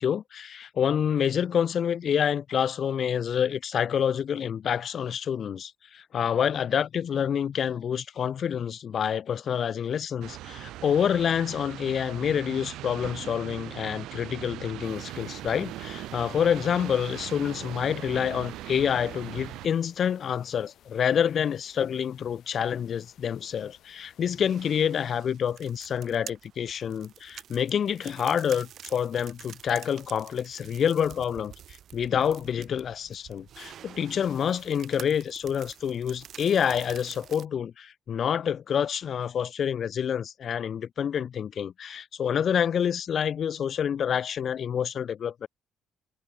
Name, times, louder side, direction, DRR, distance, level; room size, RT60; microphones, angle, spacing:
voice 1, 0.0-31.5 31.9-45.5, left 8 dB, 50° left, 0.4 m, -27 dB
sound 1, 10.2-19.7, right 15 dB, 85° right, 2.9 m, -40 dB
sound 2, 14.8-25.2, left 11 dB, 70° left, 6.8 m, -59 dB
sound 3, 24.2-37.5, right 10 dB, 60° right, 4.4 m, -48 dB
cardioid pair, 100°, 0 cm